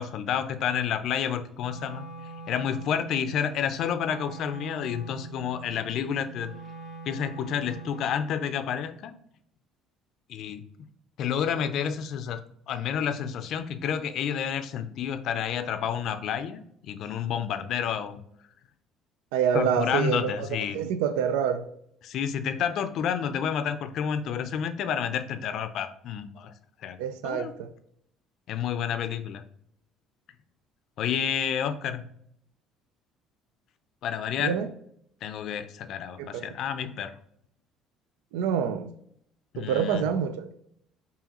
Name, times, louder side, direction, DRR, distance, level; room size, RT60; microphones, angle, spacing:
voice 1, 0.0-2.0 2.5-6.5 7.0-9.1 10.3-10.9 11.2-12.4 12.7-18.2 19.5-20.8 22.0-26.5 26.8-27.0 27.2-27.5 28.5-29.4 31.0-32.0 34.0-34.6 35.2-37.1 39.5-40.1, left 8 dB, 60° left, 0.4 m, -30 dB
Wind instrument woodwind instrument, 1.6-8.3, right 4 dB, 55° right, 0.8 m, -43 dB
voice 2, 19.3-20.5 20.7-21.6 27.0-27.7 34.4-34.7 36.2-36.4 38.3-38.9 39.6-40.5, right 8 dB, 85° right, 0.3 m, -27 dB
4.7 x 2.8 x 2.9 m
supercardioid pair, 80°, 0 cm